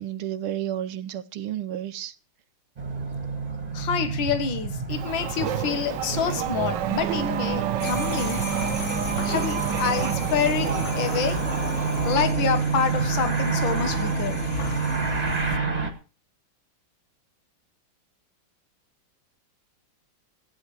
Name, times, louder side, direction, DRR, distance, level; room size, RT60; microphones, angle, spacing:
voice 1, 0.0-2.1, right 11 dB, 85° right, 1.7 m, -31 dB
sound 1, 2.8-15.9, right 5 dB, 20° right, 1.9 m, -29 dB
voice 2, 3.7-8.4 9.2-11.4 12.0-14.4, left 7 dB, 65° left, 2.2 m, -27 dB
Race car auto racing / Accelerating revving vroom, 4.9-12.1, right 10 dB, 65° right, 1.3 m, -29 dB
sound 2, 7.8-15.6, left 5 dB, 40° left, 1.3 m, -35 dB
15.0 x 9.9 x 4.8 m
omnidirectional pair, 2.3 m